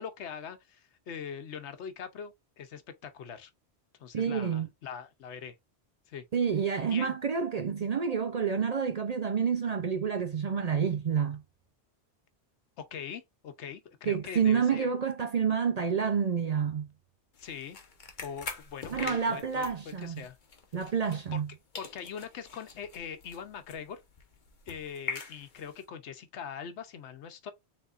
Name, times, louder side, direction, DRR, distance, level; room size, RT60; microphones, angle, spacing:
voice 1, 0.0-3.5 4.0-5.5 6.1-6.3 6.9-7.1 12.8-14.9 17.4-17.8 18.2-20.4 21.3-21.4 21.8-24.0 24.7-27.5, left 7 dB, 85° left, 1.1 m, -42 dB
voice 2, 4.1-4.7 6.3-11.4 14.1-16.9 18.9-20.2 20.7-21.5, right 6 dB, 55° right, 0.5 m, -28 dB
sound 1, 17.3-21.5 21.7-25.8, left 4 dB, 45° left, 1.1 m, -44 dB
5.4 x 3.5 x 2.4 m
omnidirectional pair, 1.1 m